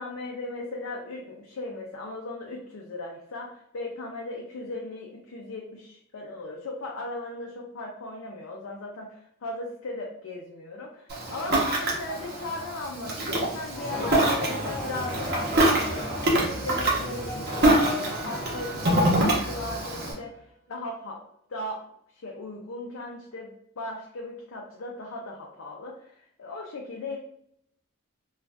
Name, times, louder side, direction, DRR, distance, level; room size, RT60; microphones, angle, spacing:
voice 1, 0.0-20.4 20.7-21.2 21.5-21.8 22.2-27.2, left 2 dB, 65° left, -1 dB, 0.5 m, -37 dB
Ocean, 11.1-20.1, right 1 dB, 50° right, 0.8 m, -25 dB
sound 1, 13.8-20.2, equal, 5° left, 0.4 m, -38 dB
2.5 x 2.3 x 3.3 m, 0.72 s
head